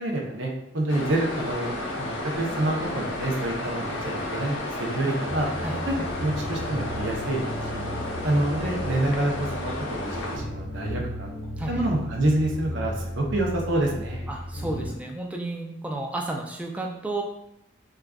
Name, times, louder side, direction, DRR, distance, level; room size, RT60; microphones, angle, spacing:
voice 1, 0.0-1.7 2.0-5.5 5.9-6.0 6.2-7.5 7.7-7.8 8.2-11.3 11.7-14.2, right 1 dB, 75° right, 0 dB, 0.7 m, -27 dB
sound 1, 0.9-10.4, left 1 dB, 85° left, 0.7 m, -32 dB
sound 2, 5.2-14.9, left 1 dB, 45° left, 0.6 m, -35 dB
voice 2, 14.3-17.2, right 2 dB, 5° right, 1 dB, 0.3 m, -32 dB
4.6 x 2.4 x 2.3 m, 0.80 s
head